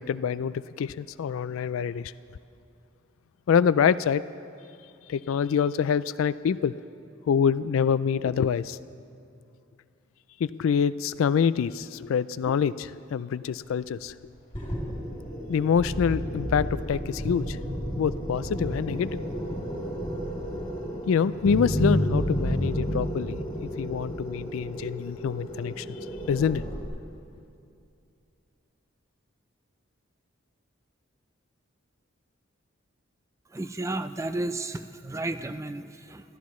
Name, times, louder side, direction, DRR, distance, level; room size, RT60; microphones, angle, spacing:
voice 1, 0.0-2.1 3.5-4.2 5.1-6.7 7.3-8.8 10.4-14.1 15.5-17.6 18.0-19.2 21.1-23.4 23.8-26.0 26.3-26.6, left 7 dB, 80° left, 16 dB, 0.3 m, -26 dB
sound 1, 14.5-26.9, equal, 30° left, 2.8 m, -31 dB
voice 2, 33.5-36.4, right 2 dB, 15° right, 10 dB, 0.4 m, -33 dB
25.5 x 14.0 x 3.1 m, 2.6 s
head